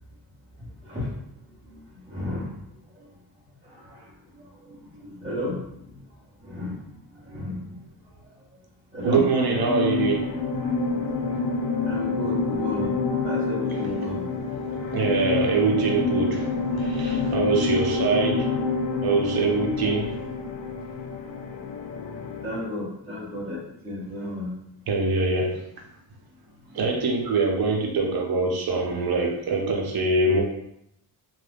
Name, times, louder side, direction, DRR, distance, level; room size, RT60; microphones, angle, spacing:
voice 1, 0.6-1.1 1.6-2.6 3.0-3.1 3.6-6.0 6.4-7.8 8.9-9.3 11.8-12.9 13.2-14.3 22.2-24.5 26.7-26.8, left 1 dB, 10° right, -11 dB, 0.7 m, -34 dB
voice 2, 9.0-10.3 14.7-18.5 19.0-20.2 24.9-25.6 26.7-30.4, right 3 dB, 55° right, 1 dB, 0.7 m, -24 dB
sound 1, 9.4-22.7, left 4 dB, 90° left, 0.5 m, -28 dB
2.5 x 2.4 x 3.4 m, 0.79 s
wide cardioid pair, 120°, 45 cm